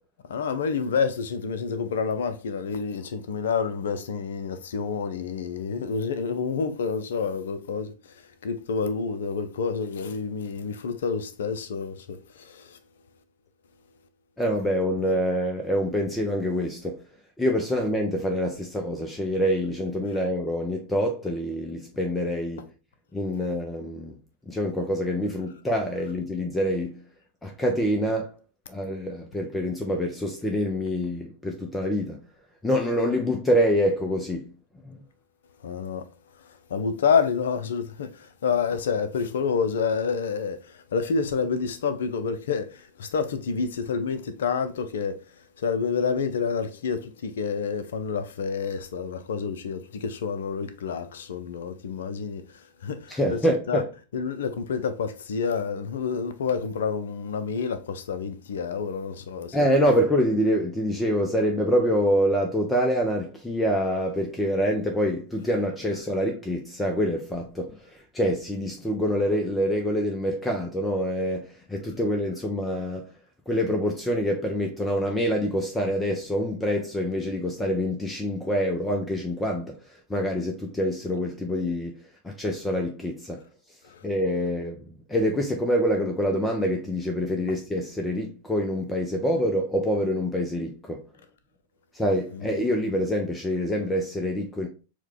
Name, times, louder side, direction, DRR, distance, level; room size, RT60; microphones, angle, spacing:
voice 1, 0.3-7.9 8.4-12.8 35.6-36.1 36.7-45.2 45.6-53.4 53.7-53.8 54.1-59.6 83.8-84.0 92.3-92.5, left 5 dB, 60° left, 0.5 m, -28 dB
voice 2, 14.4-17.0 17.4-22.6 23.1-24.2 24.5-27.0 27.4-28.4 28.7-32.2 32.6-34.5 34.8-35.0 53.1-53.9 59.5-73.1 73.5-79.8 80.1-82.0 82.4-83.4 84.0-84.8 85.1-91.0 91.9-94.7, equal, 10° left, 0.5 m, -26 dB
4.5 x 2.2 x 3.7 m
figure-of-eight pair, 90°, 0 cm